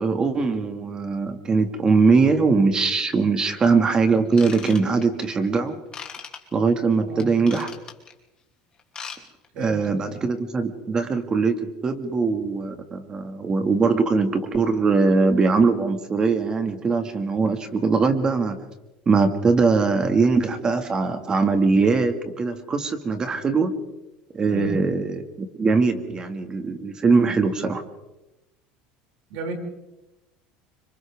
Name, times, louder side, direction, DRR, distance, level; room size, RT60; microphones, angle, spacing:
voice 1, 0.0-5.8 6.5-7.7 9.6-18.6 19.1-23.7 24.3-27.8, right 4 dB, 20° right, 7 dB, 2.0 m, -21 dB
Ratchet pawl / Tools, 4.3-5.3 5.9-6.4 7.2-8.1 8.8-9.2 9.4-9.6 10.2-10.3, left 6 dB, 25° left, 2.9 m, -38 dB
voice 2, 9.5-10.2 24.5-24.9 29.3-29.5, right 2 dB, 65° right, 1 dB, 6.3 m, -33 dB
30.0 x 26.0 x 3.6 m, 0.97 s
cardioid pair, 145°, 3 cm